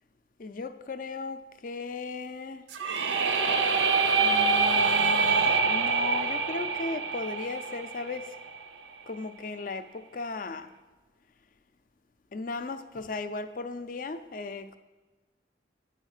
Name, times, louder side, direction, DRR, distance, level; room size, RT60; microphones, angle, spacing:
voice 1, 0.4-2.6 4.2-8.3 9.1-10.7 12.3-14.8, left 3 dB, 45° left, 0.4 m, -36 dB
sound 1, 2.7-8.6, right 4 dB, 85° right, 0.6 m, -25 dB
9.8 x 4.3 x 6.4 m
head